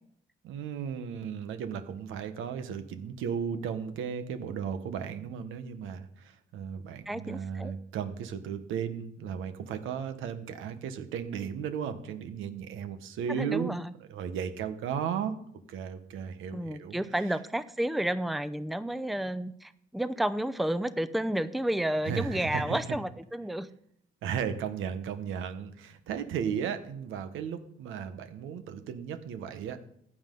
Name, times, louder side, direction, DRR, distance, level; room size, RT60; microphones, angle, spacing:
voice 1, 0.4-13.8 14.1-15.3 15.7-17.0 22.0-22.8 24.2-29.8, right 7 dB, 90° right, 9 dB, 1.2 m, -35 dB
voice 2, 7.1-7.7 13.3-13.9 16.5-23.7, right 1 dB, ahead, 13 dB, 0.6 m, -31 dB
15.0 x 9.8 x 3.9 m, 0.69 s
cardioid pair, 90°, 20 cm